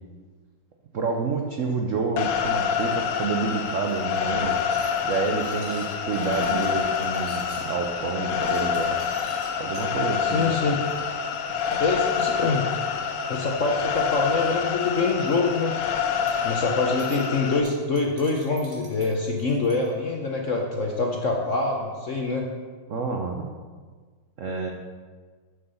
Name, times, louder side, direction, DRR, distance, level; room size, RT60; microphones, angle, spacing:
voice 1, 0.9-4.6 5.0-9.0 9.6-10.5 22.9-23.5 24.4-24.7, right 4 dB, 90° right, 2 dB, 0.6 m, -28 dB
sound 1, 2.2-17.6, left 7 dB, 80° left, 1.7 m, -27 dB
sound 2, 3.9-7.7 8.2-9.9 10.4-10.6 10.9-11.0 11.3-11.4 11.6-13.0 13.7-14.1 14.4-14.5 14.9-15.3 16.3-16.5 17.0-17.2 17.6-19.9, right 3 dB, 60° right, 2.5 m, -48 dB
voice 2, 10.2-10.8 11.8-12.7 13.3-15.7 16.4-22.5, left 3 dB, 60° left, 1 dB, 0.8 m, -25 dB
7.2 x 6.9 x 6.8 m, 1.5 s
omnidirectional pair, 2.4 m